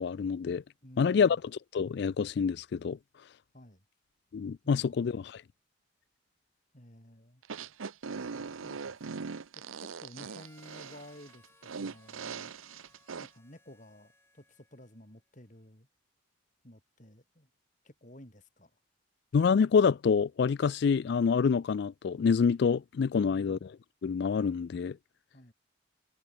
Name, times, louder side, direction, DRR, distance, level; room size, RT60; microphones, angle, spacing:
voice 1, 0.0-0.6 1.0-1.4 1.7-3.0 4.3-5.4 19.3-23.6 24.0-25.0, left 6 dB, 55° left, 0.3 m, -27 dB
voice 2, 0.8-1.4 3.5-3.8 4.6-5.0 6.7-7.4 8.3-9.0 9.5-12.5 13.2-15.9 16.6-17.5 17.8-18.7 25.3-25.5, left 1 dB, 40° left, 4.7 m, -53 dB
sound 1, 7.4-13.3, right 5 dB, 85° right, 0.7 m, -40 dB
Harmonica, 10.1-15.1, left 2 dB, 10° left, 6.0 m, -64 dB
head